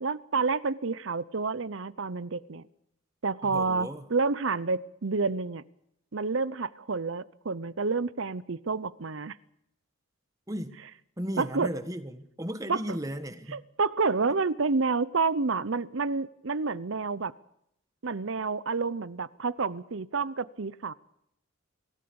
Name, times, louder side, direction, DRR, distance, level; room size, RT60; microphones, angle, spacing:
voice 1, 0.0-2.7 3.2-5.6 6.1-9.4 11.4-11.7 12.7-12.8 13.5-17.3 18.0-20.9, right 4 dB, 65° right, 0.7 m, -29 dB
voice 2, 3.4-4.1 10.5-10.8 11.2-13.6, equal, 15° right, 1.5 m, -35 dB
26.0 x 16.5 x 7.0 m
head